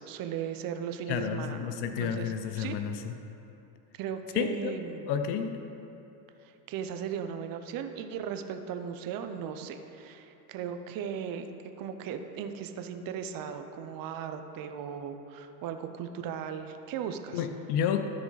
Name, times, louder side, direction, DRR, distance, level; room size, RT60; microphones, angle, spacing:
voice 1, 0.0-2.8 4.0-5.1 6.4-11.5 11.8-17.4, right 8 dB, 45° right, 7 dB, 0.7 m, -37 dB
voice 2, 1.1-3.1 4.3-4.8 5.1-5.6 17.3-18.0, left 8 dB, 50° left, 8 dB, 0.7 m, -30 dB
12.5 x 4.9 x 4.1 m, 2.9 s
hypercardioid pair, 85°, 50 cm